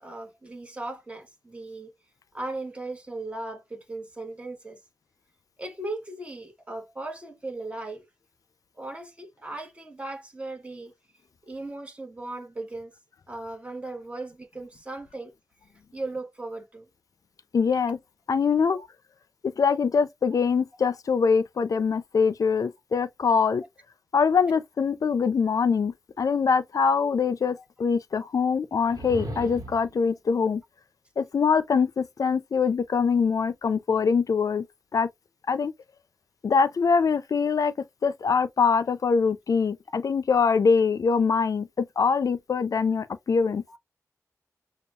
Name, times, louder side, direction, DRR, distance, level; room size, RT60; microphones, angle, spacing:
voice 1, 0.0-1.9 2.3-4.8 5.6-8.0 8.7-10.9 11.4-12.9 13.3-15.3 15.9-16.8 18.7-18.9 27.6-27.7 43.7-43.8, right 2 dB, 20° right, 1.3 m, -37 dB
voice 2, 17.5-18.0 18.3-18.8 19.4-23.6 24.1-30.6 31.2-34.7 34.9-35.1 35.5-35.7 36.4-37.7 38.0-43.6, left 5 dB, 70° left, 0.4 m, -23 dB
sound 1, 28.8-30.0, right 1 dB, 85° right, 1.1 m, -37 dB
6.8 x 2.3 x 2.3 m
wide cardioid pair, 115°, 6 cm